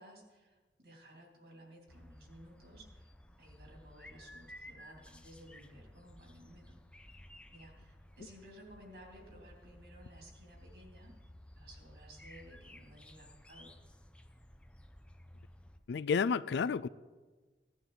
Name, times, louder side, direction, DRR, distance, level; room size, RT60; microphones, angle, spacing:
voice 1, 0.0-3.1 3.4-6.8 7.5-11.2 11.5-13.7, equal, 60° right, 3.0 m, -56 dB
sound 1, 1.9-15.8, left 1 dB, 5° left, 0.5 m, -56 dB
voice 2, 15.9-16.9, left 5 dB, 75° left, 0.4 m, -31 dB
16.0 x 11.5 x 3.9 m
head